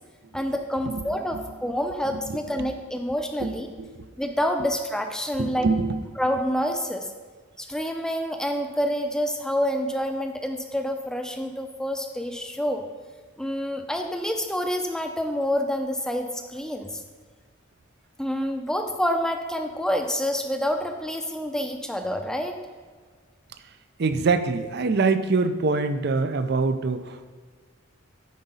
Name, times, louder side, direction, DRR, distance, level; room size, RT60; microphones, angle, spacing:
voice 1, 0.3-3.7 4.2-5.7 6.2-7.1 7.6-12.8 13.4-16.9 18.2-22.6, equal, 5° left, 4 dB, 0.5 m, -27 dB
voice 2, 3.4-4.1 5.4-6.0 24.0-27.4, right 4 dB, 55° right, 10 dB, 0.5 m, -25 dB
9.5 x 4.9 x 5.5 m, 1.5 s
head